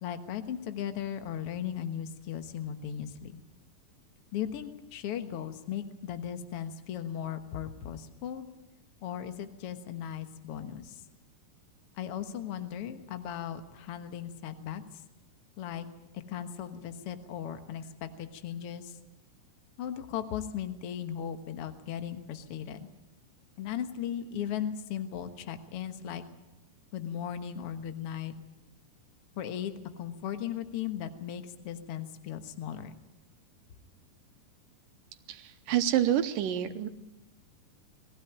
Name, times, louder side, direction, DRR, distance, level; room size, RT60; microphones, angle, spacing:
voice 1, 0.0-3.4 4.3-8.5 9.0-11.0 12.0-14.8 15.6-15.9 16.1-18.9 19.8-22.9 23.6-26.2 26.9-28.3 29.4-33.0, left 9 dB, 55° left, 8 dB, 1.8 m, -37 dB
voice 2, 35.3-36.9, right 11 dB, 80° right, 9 dB, 2.6 m, -28 dB
21.5 x 15.5 x 9.2 m, 0.96 s
omnidirectional pair, 3.9 m